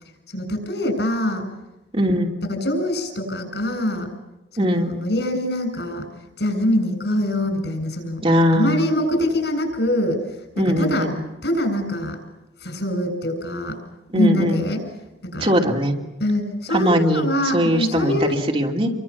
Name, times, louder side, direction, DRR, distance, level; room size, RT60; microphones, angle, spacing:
voice 1, 0.3-1.5 2.4-4.1 4.6-6.1 6.4-8.2 8.5-10.2 10.6-11.1 11.4-12.2 12.6-13.8 14.1-14.8 15.2-15.5 16.2-18.4, left 1 dB, 65° left, 6 dB, 7.9 m, -24 dB
voice 2, 1.9-2.3 4.6-4.9 8.2-8.8 10.6-11.2 14.1-14.6 15.4-16.0 16.7-17.3 17.5-18.9, equal, 30° right, 2 dB, 3.0 m, -20 dB
29.5 x 24.0 x 7.3 m, 1.0 s
head